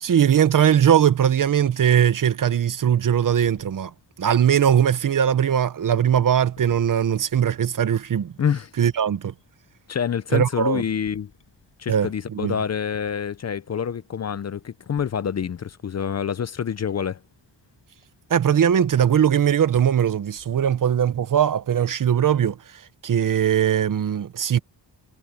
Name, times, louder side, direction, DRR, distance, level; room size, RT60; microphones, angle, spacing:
voice 1, 0.0-3.9 4.2-8.3 8.8-9.3 10.3-10.8 11.9-12.5 18.3-24.6, right 9 dB, 50° right, 0.8 m, -20 dB
sound 1, 3.0-21.2, left 8 dB, 90° left, 7.6 m, -57 dB
voice 2, 8.4-8.7 9.9-11.3 11.8-17.2, left 7 dB, 40° left, 0.5 m, -27 dB
wide cardioid pair, 170°, 42 cm